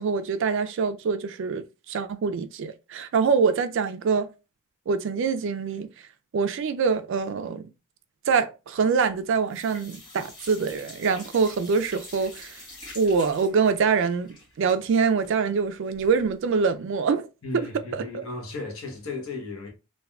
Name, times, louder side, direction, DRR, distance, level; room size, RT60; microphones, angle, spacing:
voice 1, 0.0-4.3 4.9-5.9 6.3-7.7 8.3-12.6 12.9-17.3 17.9-18.3, right 5 dB, 60° right, 0.3 m, -25 dB
sound 1, 8.8-9.2 9.5-16.3 16.7-16.8 17.1-17.2, left 1 dB, 20° left, 1.4 m, -46 dB
voice 2, 17.4-19.7, left 3 dB, 70° left, 0.9 m, -35 dB
3.5 x 2.2 x 2.2 m
head